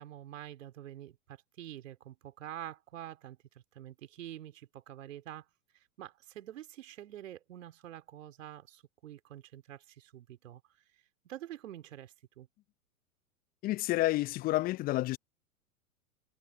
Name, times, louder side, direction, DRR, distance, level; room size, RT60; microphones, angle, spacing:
voice 1, 0.0-5.5 5.7-10.6 11.2-12.5, right 12 dB, 60° right, 4.2 m, -47 dB
voice 2, 13.6-15.2, left 17 dB, 20° left, 0.7 m, -29 dB
figure-of-eight pair, 105°, 44 cm